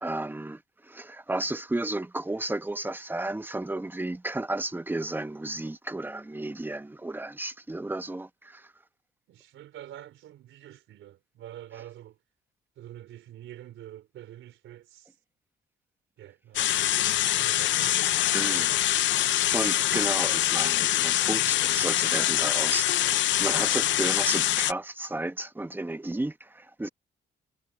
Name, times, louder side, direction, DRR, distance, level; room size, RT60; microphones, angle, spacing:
voice 1, 0.0-8.7 18.3-18.7 19.5-26.9, right 2 dB, 10° right, 1.1 m, -33 dB
voice 2, 9.3-12.2 12.8-15.1 16.2-18.0 18.4-18.8, right 12 dB, 80° right, 4.2 m, -46 dB
sound 1, 16.6-24.7, left 13 dB, 70° left, 0.6 m, -24 dB
cardioid pair, 90°, 20 cm